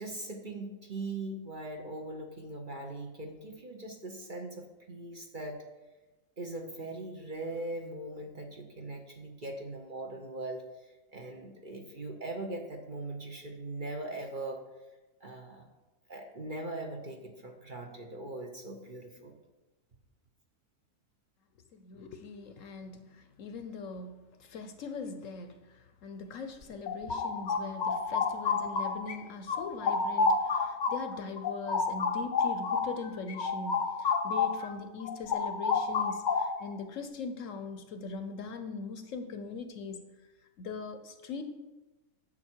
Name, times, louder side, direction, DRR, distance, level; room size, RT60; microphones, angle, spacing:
voice 1, 0.0-5.6 6.4-14.7 15.2-15.7 16.1-19.4, right 2 dB, 40° right, 2 dB, 1.0 m, -40 dB
voice 2, 21.7-40.0 40.6-41.4, left 4 dB, 65° left, 8 dB, 1.0 m, -41 dB
sound 1, 26.6-29.2 29.5-34.7 35.0-36.7, left 4 dB, 45° left, 0.6 m, -30 dB
9.9 x 7.5 x 4.6 m, 1.1 s
omnidirectional pair, 1.6 m